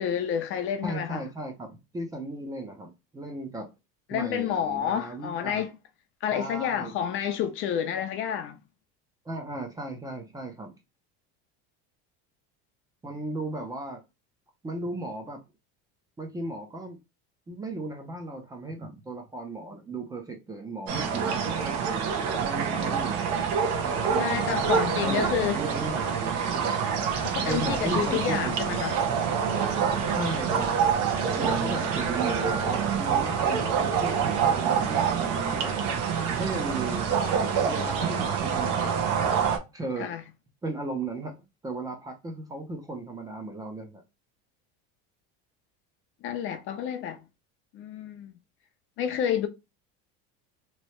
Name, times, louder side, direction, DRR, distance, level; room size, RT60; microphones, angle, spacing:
voice 1, 0.0-1.2 4.1-5.7 6.2-8.6 24.2-25.6 27.2-29.0 40.0-40.2 46.2-47.2 47.7-48.3 49.0-49.5, left 9 dB, 40° left, 0.5 m, -29 dB
voice 2, 0.8-3.7 4.1-5.6 6.3-6.9 9.2-10.7 13.0-14.0 14.6-15.4 16.2-17.0 17.5-23.2 23.8-24.6 25.0-26.8 27.5-29.0 30.1-30.7 31.4-35.7 36.4-37.0 37.7-39.1 39.7-40.1 40.6-41.4 41.6-44.0, right 2 dB, 10° right, 0.6 m, -36 dB
sound 1, 20.9-39.6, right 6 dB, 60° right, 0.9 m, -26 dB
3.1 x 2.8 x 3.1 m
cardioid pair, 155°, 31 cm